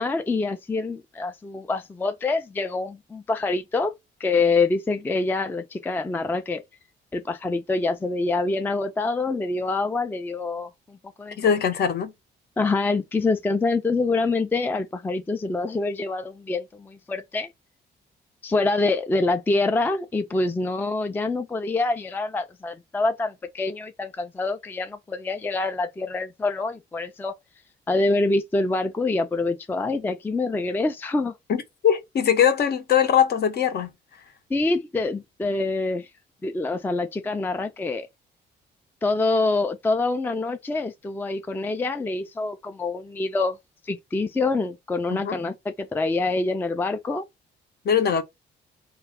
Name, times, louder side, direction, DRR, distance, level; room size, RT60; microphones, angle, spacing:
voice 1, 0.0-3.9 4.2-6.6 7.1-11.4 12.6-17.5 18.4-27.3 27.9-31.3 34.5-36.1 36.4-38.1 39.0-43.6 43.8-47.2, left 3 dB, 10° left, 0.3 m, -26 dB
voice 2, 11.4-12.1 31.5-33.9 45.1-45.4 47.8-48.2, left 8 dB, 55° left, 0.7 m, -21 dB
2.3 x 2.3 x 3.4 m
cardioid pair, 90°, 20 cm